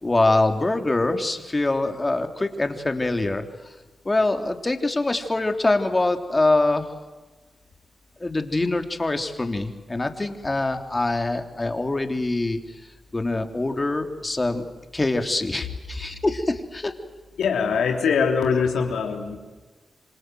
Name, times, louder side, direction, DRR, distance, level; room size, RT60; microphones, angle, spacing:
voice 1, 0.0-3.4 4.1-6.9 8.2-12.8 13.1-14.6 14.9-16.9, left 2 dB, 30° left, 6 dB, 3.5 m, -24 dB
voice 2, 17.4-19.4, left 6 dB, 85° left, 3 dB, 3.5 m, -22 dB
28.5 x 25.5 x 7.9 m, 1.2 s
cardioid pair, 50°, 0 cm